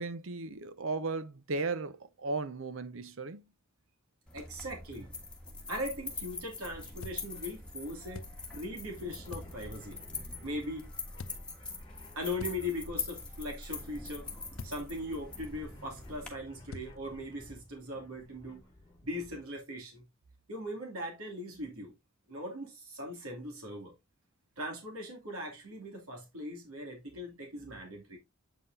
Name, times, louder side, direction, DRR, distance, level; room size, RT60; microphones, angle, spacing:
voice 1, 0.0-3.4, right 3 dB, 65° right, 0.7 m, -36 dB
sound 1, 4.3-16.3, left 3 dB, 5° left, 1.5 m, -44 dB
voice 2, 4.3-10.9 12.1-14.3 14.6-18.6 19.0-20.0 20.5-22.0 22.3-23.9 24.6-28.2, left 1 dB, 85° right, 2.7 m, -40 dB
sound 2, 6.5-19.4, equal, 20° left, 1.4 m, -53 dB
sound 3, 7.0-7.6 8.1-8.7 9.3-9.9 11.1-11.7 12.4-13.3 14.6-15.2 16.7-17.4, left 3 dB, 70° left, 0.6 m, -47 dB
8.2 x 5.6 x 2.7 m
head